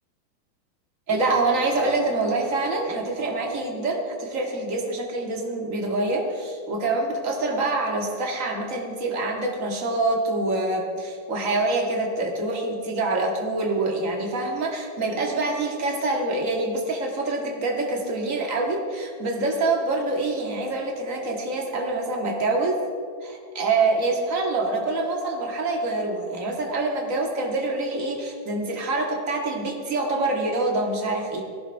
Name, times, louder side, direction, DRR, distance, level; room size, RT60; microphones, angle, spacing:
voice 1, 1.1-22.8 23.2-31.4, right 2 dB, 40° right, 0 dB, 2.2 m, -26 dB
18.5 x 15.0 x 3.6 m, 2.3 s
omnidirectional pair, 2.2 m